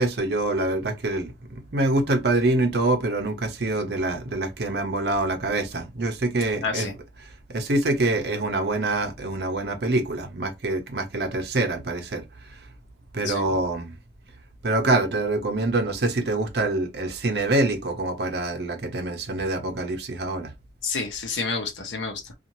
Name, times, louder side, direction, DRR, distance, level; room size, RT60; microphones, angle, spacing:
voice 1, 0.0-6.9 7.2-12.2 13.1-13.9 14.6-20.5, right 2 dB, 60° right, 0.7 m, -25 dB
voice 2, 6.6-6.9 13.2-13.5 20.8-22.3, left 4 dB, 85° left, 0.7 m, -29 dB
2.6 x 2.4 x 2.9 m
head